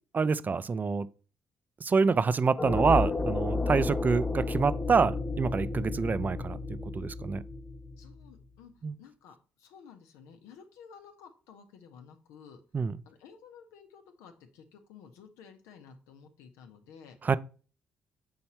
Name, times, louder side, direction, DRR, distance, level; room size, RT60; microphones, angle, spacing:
voice 1, 0.1-1.1 1.8-7.4 8.8-8.9 12.7-13.0 17.2-17.4, right 5 dB, 35° right, 0.4 m, -27 dB
sound 1, 2.6-8.4, left 3 dB, 30° left, 1.3 m, -32 dB
voice 2, 8.0-8.7 9.0-12.6 13.0-17.2, left 6 dB, 80° left, 0.9 m, -53 dB
5.6 x 4.3 x 4.3 m
hypercardioid pair, 50°, 5 cm